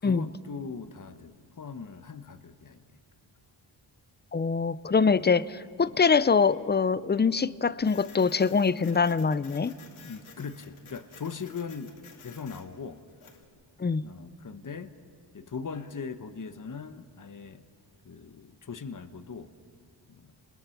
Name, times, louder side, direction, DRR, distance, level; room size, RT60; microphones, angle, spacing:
voice 1, 0.0-2.8 10.0-12.0 12.2-13.0 14.0-14.9 15.3-17.6 18.0-19.5 20.1-20.3, left 5 dB, 40° left, 9 dB, 1.2 m, -40 dB
voice 2, 4.3-9.7 13.8-14.0, left 5 dB, 20° left, 17 dB, 0.6 m, -24 dB
Printer, 7.8-13.4, left 6 dB, 85° left, 2.4 m, -53 dB
29.5 x 21.5 x 5.9 m, 2.1 s
cardioid pair, 70°, 48 cm